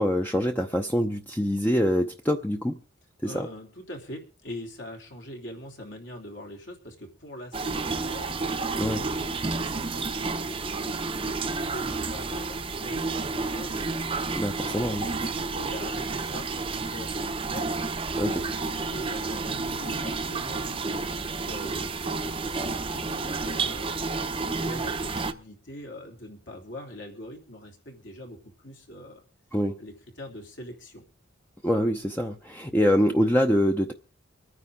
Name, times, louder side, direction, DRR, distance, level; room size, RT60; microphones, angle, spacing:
voice 1, 0.0-2.8 3.2-3.5 8.8-9.0 14.3-15.1 18.1-18.4 29.5-29.8 31.6-33.9, equal, 10° left, 0.7 m, -25 dB
voice 2, 3.2-16.5 16.7-29.2 29.8-31.0, left 1 dB, 65° left, 3.3 m, -43 dB
sound 1, 7.5-25.3, right 3 dB, 25° right, 0.7 m, -30 dB
25.0 x 9.7 x 3.7 m
head